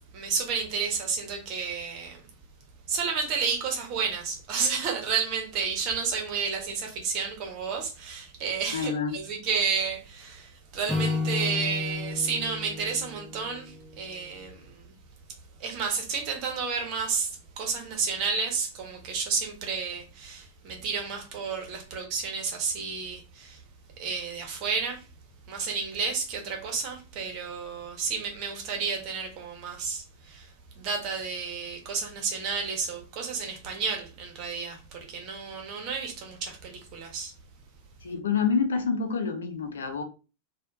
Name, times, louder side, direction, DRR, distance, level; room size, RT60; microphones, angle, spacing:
voice 1, 0.1-2.2 2.9-14.9 15.6-23.6 24.0-25.0 25.5-37.3, right 5 dB, 40° right, 1.2 m, -31 dB
voice 2, 8.7-9.2 38.0-40.0, left 5 dB, 65° left, 0.7 m, -27 dB
Acoustic guitar / Strum, 10.9-14.2, left 3 dB, 5° left, 0.8 m, -32 dB
4.2 x 2.5 x 2.6 m
figure-of-eight pair, 90°, 0 cm